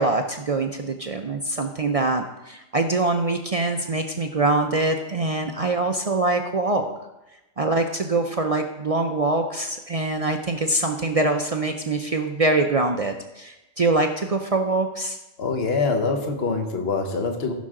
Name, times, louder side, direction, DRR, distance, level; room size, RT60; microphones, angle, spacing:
voice 1, 0.0-6.9 7.6-15.2, right 2 dB, 55° right, 4 dB, 0.4 m, -24 dB
voice 2, 15.4-17.5, left 4 dB, 50° left, 4 dB, 1.3 m, -24 dB
15.0 x 6.2 x 3.7 m, 0.97 s
omnidirectional pair, 1.4 m